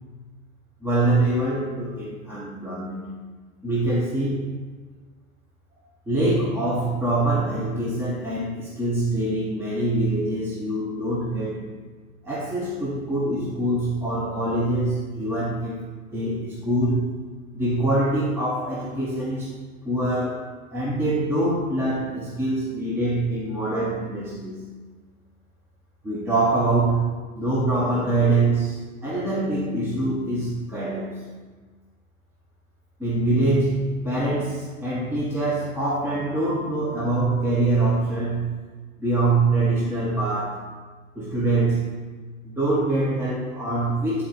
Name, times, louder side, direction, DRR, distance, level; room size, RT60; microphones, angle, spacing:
voice 1, 0.8-3.2 3.6-4.6 6.1-11.7 12.2-15.8 16.1-17.1 17.5-19.5 19.8-24.7 26.0-31.2 33.0-38.6 39.0-40.7 41.1-42.0 42.4-44.3, right 2 dB, 5° right, -6 dB, 0.9 m, -24 dB
9.1 x 4.1 x 4.4 m, 1.4 s
hypercardioid pair, 115°, 43 cm